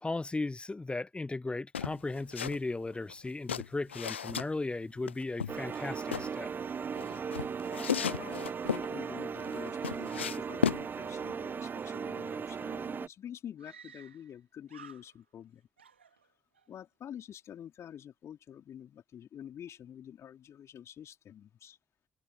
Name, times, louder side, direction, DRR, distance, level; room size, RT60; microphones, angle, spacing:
voice 1, 0.0-6.5, left 2 dB, 15° left, 0.8 m, -36 dB
sound 1, 1.7-2.6 2.9-4.5 5.1-6.3 7.0-8.9 9.4-10.8, left 8 dB, 80° left, 0.7 m, -34 dB
sound 2, 5.5-13.1, right 6 dB, 30° right, 0.4 m, -37 dB
voice 2, 7.8-15.7 16.7-21.8, left 9 dB, 50° left, 4.2 m, -47 dB
Screaming, 13.6-14.4 14.7-15.5 15.8-16.7, right 6 dB, 85° right, 3.8 m, -55 dB
figure-of-eight pair, 45°, 6 cm